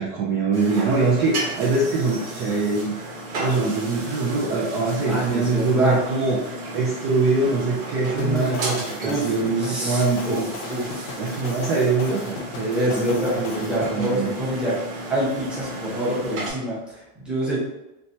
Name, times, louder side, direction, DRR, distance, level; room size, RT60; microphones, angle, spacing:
voice 1, 0.0-3.0 3.4-10.5 11.2-14.3, right 3 dB, 35° right, -4 dB, 0.4 m, -23 dB
sound 1, 0.5-16.5, right 1 dB, 80° right, 1.3 m, -34 dB
voice 2, 5.1-6.0 8.1-8.5 9.0-10.4 10.7-11.1 12.8-14.7 15.1-17.6, equal, ahead, -8 dB, 0.8 m, -26 dB
sound 2, 8.2-13.9, left 5 dB, 60° left, 0.6 m, -37 dB
3.2 x 3.1 x 2.8 m, 0.95 s
cardioid pair, 170°, 42 cm